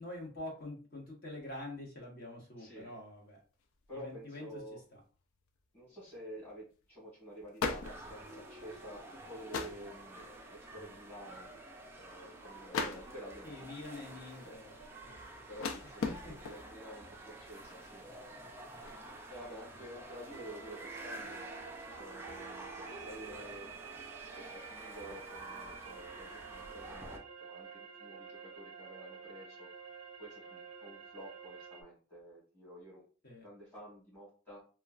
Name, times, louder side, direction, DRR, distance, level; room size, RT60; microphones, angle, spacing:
voice 1, 0.0-3.4 3.9-5.0 13.4-14.7 15.0-16.3 33.2-33.5, left 1 dB, 45° left, -1 dB, 1.0 m, -46 dB
voice 2, 2.6-2.9 3.9-4.8 5.7-11.5 11.9-13.5 14.1-14.6 15.1-18.3 18.7-21.5 21.9-23.7 24.1-29.7 30.2-33.0 33.4-34.6, equal, 10° left, -9 dB, 1.3 m, -50 dB
sound 1, 3.1-3.2 3.4-3.9 4.3-4.4 5.8-6.2 6.5-6.6 6.8-7.1 7.4-8.8 9.3-10.0 10.4-10.7 11.1-11.2 11.3-12.1 12.7-13.5 14.0-16.9 17.4-17.8 18.0-19.1, left 4 dB, 80° left, 0.4 m, -40 dB
sound 2, 7.8-27.2, right 2 dB, 10° right, 0.3 m, -49 dB
sound 3, 20.3-31.8, right 6 dB, 85° right, 0.5 m, -50 dB
3.0 x 2.2 x 2.3 m, 0.37 s
head